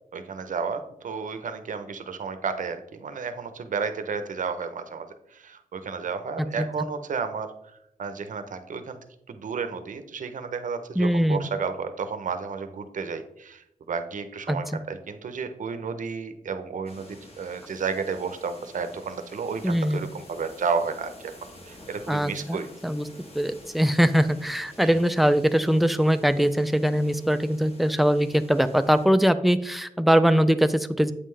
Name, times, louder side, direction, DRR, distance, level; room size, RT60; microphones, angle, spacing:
voice 1, 0.1-7.5 8.0-9.0 9.3-21.3 21.6-22.7 24.8-25.0, right 5 dB, 65° right, 9 dB, 0.7 m, -32 dB
voice 2, 11.0-11.4 14.5-14.6 19.6-20.0 22.1-22.6 22.8-23.1 23.3-31.1, equal, ahead, 10 dB, 0.3 m, -22 dB
sound 1, 16.8-29.1, left 1 dB, 45° left, 1.4 m, -49 dB
8.3 x 5.5 x 3.2 m, 0.81 s
wide cardioid pair, 165°, 14 cm